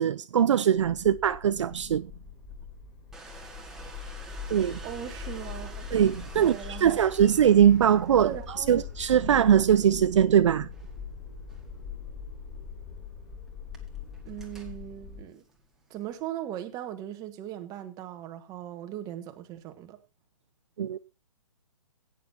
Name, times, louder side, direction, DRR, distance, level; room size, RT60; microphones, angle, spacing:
voice 1, 0.0-2.1 4.5-4.8 5.9-8.3 8.7-10.7 20.8-21.0, right 9 dB, 60° right, 0.6 m, -21 dB
sound 1, 0.8-15.2, left 6 dB, 25° left, 5.0 m, -42 dB
Domestic sounds home sounds, 3.1-16.2, right 3 dB, ahead, 1.9 m, -51 dB
voice 2, 4.8-5.9 6.3-7.1 8.2-8.9 14.2-15.4 15.9-20.0, right 12 dB, 20° right, 1.4 m, -39 dB
17.0 x 9.4 x 2.8 m
hypercardioid pair, 145°, 17 cm